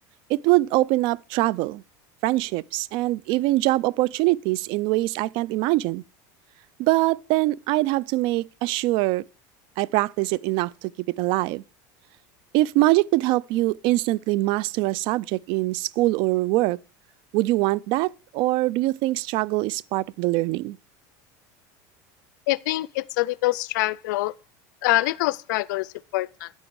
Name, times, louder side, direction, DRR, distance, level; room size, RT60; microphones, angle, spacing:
voice 1, 0.3-1.8 2.2-6.0 6.8-9.2 9.8-11.6 12.5-16.8 17.3-20.8, right 19 dB, 60° right, 0.4 m, -23 dB
voice 2, 22.5-24.3 24.8-26.5, left 18 dB, 85° left, 0.4 m, -25 dB
9.6 x 8.8 x 4.7 m
supercardioid pair, 135°, 10 cm